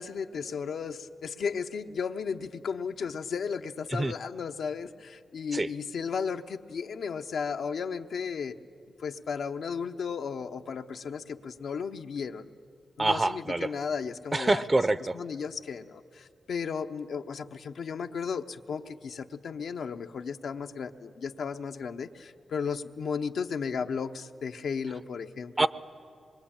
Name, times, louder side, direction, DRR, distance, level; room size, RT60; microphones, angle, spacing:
voice 1, 0.0-8.6 9.0-12.5 13.0-14.6 15.1-25.7, left 6 dB, 80° left, 6 dB, 0.9 m, -34 dB
voice 2, 13.0-13.7 14.3-15.2 25.6-25.7, right 2 dB, 30° right, 15 dB, 0.7 m, -25 dB
25.0 x 22.5 x 8.8 m, 2.4 s
cardioid pair, 85°, 0 cm